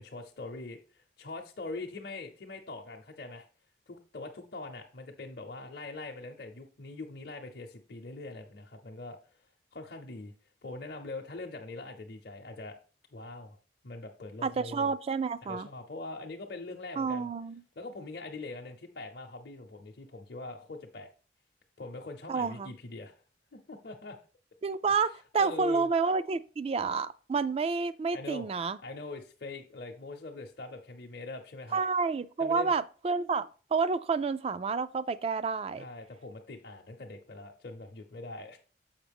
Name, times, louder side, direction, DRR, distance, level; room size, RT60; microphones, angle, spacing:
voice 1, 0.0-3.4 3.9-9.2 9.7-10.3 10.6-12.8 13.1-13.6 13.8-14.9 15.4-17.3 17.8-21.1 21.8-23.1 23.5-24.2 25.3-25.9 28.1-28.5 28.8-31.8 32.4-32.8 35.8-38.6, left 2 dB, 60° left, 0.7 m, -42 dB
voice 2, 14.4-15.7 17.0-17.6 22.3-22.7 24.6-28.8 31.7-35.8, right 4 dB, 35° right, 0.3 m, -29 dB
7.3 x 5.4 x 3.5 m
head